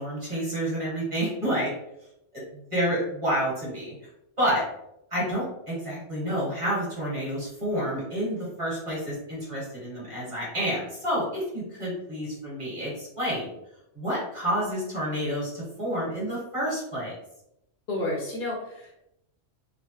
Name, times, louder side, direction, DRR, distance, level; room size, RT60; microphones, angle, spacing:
voice 1, 0.0-1.7 2.3-3.9 4.4-4.6 5.1-13.5 13.9-17.1, equal, 25° right, -7 dB, 1.3 m, -29 dB
voice 2, 17.9-19.0, left 1 dB, 60° left, -2 dB, 0.8 m, -31 dB
3.0 x 2.1 x 2.9 m, 0.81 s
omnidirectional pair, 1.2 m